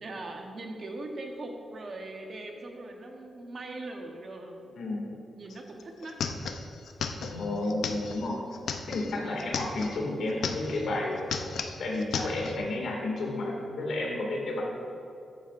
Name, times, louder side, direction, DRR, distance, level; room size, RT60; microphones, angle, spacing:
voice 1, 0.0-4.6 5.3-6.1, right 2 dB, 40° right, 2 dB, 1.0 m, -40 dB
voice 2, 4.7-5.1 7.3-8.5 8.9-11.2 11.8-14.6, left 2 dB, 75° left, -1 dB, 2.1 m, -31 dB
sound 1, 5.5-5.6 5.8-10.0 10.3-10.9 11.2-12.6, left 5 dB, 90° left, 0.6 m, -35 dB
14.5 x 9.1 x 2.5 m, 2.8 s
wide cardioid pair, 165°, 0 cm